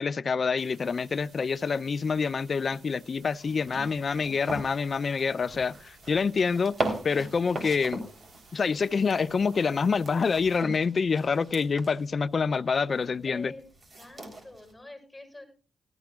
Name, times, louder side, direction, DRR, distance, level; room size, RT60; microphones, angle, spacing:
voice 1, 0.0-6.8 7.0-8.1 8.5-13.5, left 5 dB, 50° left, 0.4 m, -27 dB
sound 1, 0.6-10.6, right 4 dB, 65° right, 3.0 m, -57 dB
sound 2, 3.4-14.7, right 2 dB, 40° right, 3.6 m, -39 dB
voice 2, 13.2-13.6 14.0-15.4, left 2 dB, 10° left, 6.8 m, -45 dB
18.0 x 13.0 x 2.4 m
cardioid pair, 75°, 0 cm